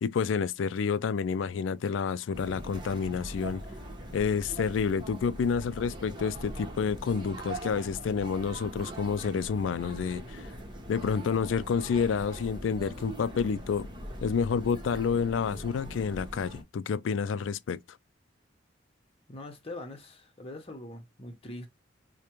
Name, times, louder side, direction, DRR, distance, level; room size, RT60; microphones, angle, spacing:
voice 1, 0.0-3.6 4.1-10.5 10.9-13.9 14.2-17.8, left 6 dB, 90° left, 0.3 m, -29 dB
sound 1, 2.3-16.6, right 1 dB, 25° right, 1.0 m, -42 dB
voice 2, 19.3-21.7, left 1 dB, 30° left, 0.9 m, -42 dB
5.0 x 2.2 x 2.9 m
head